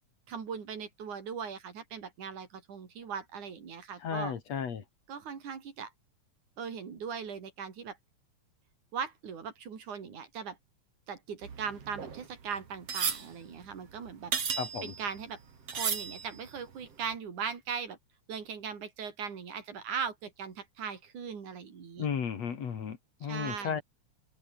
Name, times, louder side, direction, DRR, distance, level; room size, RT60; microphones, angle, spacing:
voice 1, 0.3-4.3 5.1-5.9 6.6-8.0 8.9-10.6 11.1-14.3 14.8-15.4 15.7-18.0 18.3-22.1 23.2-23.8, right 6 dB, 80° right, 4.8 m, -39 dB
voice 2, 4.0-4.8 14.6-14.9 22.0-23.8, left 7 dB, 60° left, 3.5 m, -34 dB
sound 1, 11.4-15.3 15.7-16.6 17.1-17.2, right 6 dB, 50° right, 3.9 m, -35 dB
omnidirectional pair, 3.5 m